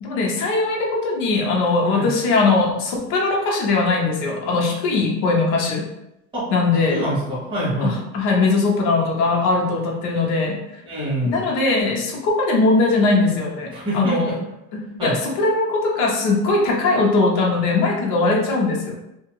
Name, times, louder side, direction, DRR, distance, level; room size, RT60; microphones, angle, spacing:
voice 1, 0.0-5.8 6.5-7.0 7.8-10.6 11.2-14.3 14.7-18.9, left 3 dB, 75° left, -1 dB, 0.8 m, -20 dB
voice 2, 6.9-8.0 10.8-11.4 13.7-14.3 15.0-15.2, right 1 dB, 15° right, -9 dB, 1.1 m, -25 dB
2.8 x 2.4 x 2.9 m, 0.87 s
cardioid pair, 175°, 33 cm